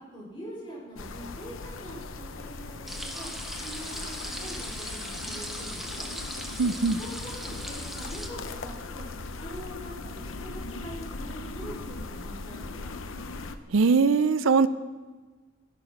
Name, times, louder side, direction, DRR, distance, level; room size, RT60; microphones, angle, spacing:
voice 1, 0.1-3.3 3.6-6.1 6.6-9.1 9.4-13.0, right 1 dB, 25° left, -5 dB, 5.0 m, -43 dB
sound 1, 1.0-13.6, left 3 dB, 75° left, 0.8 m, -39 dB
sound 2, 2.9-8.3, equal, ahead, 1.1 m, -39 dB
voice 2, 6.6-7.0 13.7-14.7, right 4 dB, 75° right, 13 dB, 0.5 m, -21 dB
13.0 x 11.0 x 5.8 m, 1.3 s
head